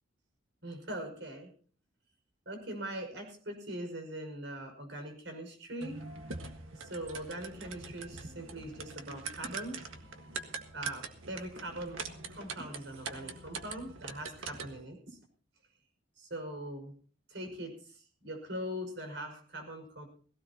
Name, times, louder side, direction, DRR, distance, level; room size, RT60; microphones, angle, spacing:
voice 1, 0.6-1.5 2.5-6.0 6.8-9.7 10.7-12.0 12.3-15.2 16.2-16.9 17.3-20.1, right 1 dB, 65° right, 4 dB, 5.6 m, -41 dB
sound 1, 5.8-14.9, right 4 dB, 90° right, 1.7 m, -43 dB
18.5 x 17.0 x 2.9 m, 0.42 s
head